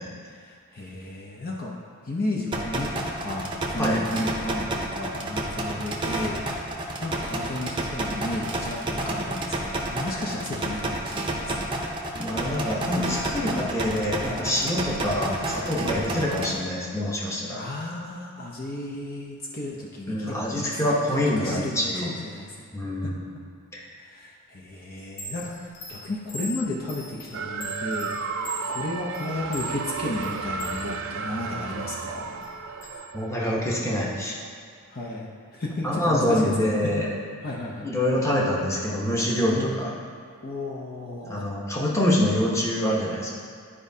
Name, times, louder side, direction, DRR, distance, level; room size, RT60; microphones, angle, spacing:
voice 1, 0.2-1.7 2.0-6.7 7.0-11.7 15.8-16.1 17.5-20.9 21.4-22.5 23.0-23.1 24.0-28.1 28.7-32.2 34.9-36.7 37.4-37.9 39.5-39.9 40.4-41.5, left 1 dB, 45° left, -3 dB, 0.7 m, -33 dB
sound 1, 2.5-16.5, right 1 dB, 25° right, 0.7 m, -30 dB
voice 2, 12.2-17.6 20.1-22.1 22.7-23.3 23.7-23.8 33.1-34.4 35.8-37.1 37.8-39.9 41.2-43.3, left 1 dB, 15° left, -4 dB, 1.0 m, -25 dB
Chime, 25.0-30.8 31.3-32.9, right 1 dB, 70° left, 1.5 m, -40 dB
sound 2, 27.3-33.9, right 5 dB, 60° right, 0.5 m, -33 dB
11.0 x 4.9 x 2.8 m, 2.3 s
head